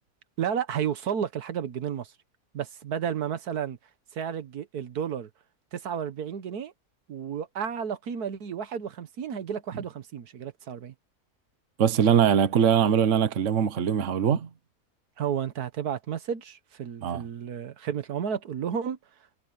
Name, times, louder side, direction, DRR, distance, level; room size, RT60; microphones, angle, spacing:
voice 1, 0.4-2.1 2.5-3.8 4.1-5.3 5.7-6.7 7.1-10.9 15.2-19.0, right 8 dB, 85° right, 1.7 m, -32 dB
voice 2, 11.8-14.5 17.0-17.2, right 8 dB, 55° right, 1.3 m, -22 dB
omnidirectional pair, 1.6 m